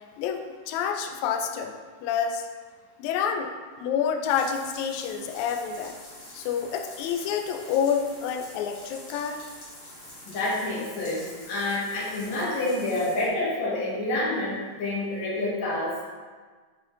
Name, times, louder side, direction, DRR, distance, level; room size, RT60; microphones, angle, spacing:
voice 1, 0.2-1.7 2.0-2.5 3.0-3.5 3.8-6.0 6.3-9.4, left 7 dB, 90° left, 5 dB, 1.6 m, -28 dB
sound 1, 4.3-13.3, left 1 dB, 40° left, 1.6 m, -46 dB
voice 2, 10.3-16.0, left 2 dB, 60° left, -6 dB, 2.6 m, -28 dB
9.5 x 4.4 x 2.6 m, 1.5 s
omnidirectional pair, 3.9 m